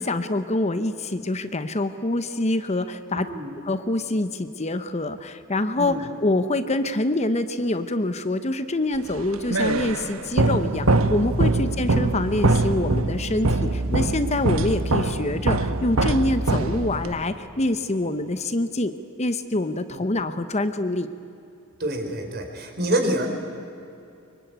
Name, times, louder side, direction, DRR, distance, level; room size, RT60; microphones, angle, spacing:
voice 1, 0.0-3.3 3.6-18.9 19.2-21.1, left 2 dB, 30° left, 10 dB, 0.9 m, -25 dB
voice 2, 3.1-3.5 5.8-6.1 19.9-20.0 21.8-23.3, right 1 dB, 50° right, 4 dB, 4.0 m, -27 dB
sound 1, 9.1-17.2, right 2 dB, 80° right, 1.3 m, -23 dB
24.0 x 23.5 x 9.4 m, 2.7 s
head